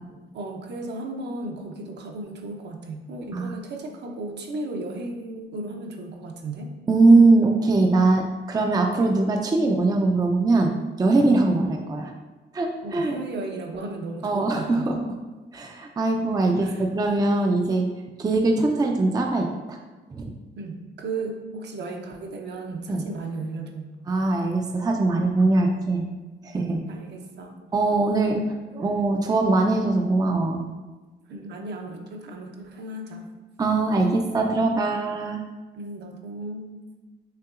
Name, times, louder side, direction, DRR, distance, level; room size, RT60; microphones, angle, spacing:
voice 1, 0.3-6.7 12.8-14.9 16.6-16.9 20.6-23.9 26.9-27.6 31.3-33.3 35.7-36.7, right 2 dB, 60° right, 2 dB, 0.7 m, -35 dB
voice 2, 6.9-10.7 11.0-12.1 12.5-13.2 14.2-15.0 15.5-17.9 18.2-19.8 20.1-20.3 22.9-23.0 24.1-26.0 26.4-26.8 27.7-28.4 28.7-30.6 33.6-35.4, right 3 dB, 20° right, 2 dB, 0.4 m, -21 dB
5.7 x 3.0 x 2.4 m, 1.2 s
cardioid pair, 90°, 20 cm